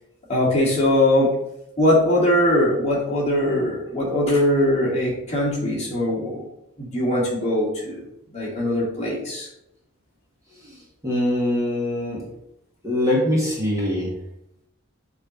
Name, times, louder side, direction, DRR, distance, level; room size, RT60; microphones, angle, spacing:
voice 1, 0.3-1.3 1.8-6.4 6.8-8.0 8.3-9.5, left 1 dB, 30° left, -5 dB, 2.1 m, -21 dB
voice 2, 10.5-12.2 12.8-14.1, left 1 dB, 15° right, -5 dB, 1.5 m, -23 dB
7.3 x 3.2 x 5.0 m, 0.81 s
head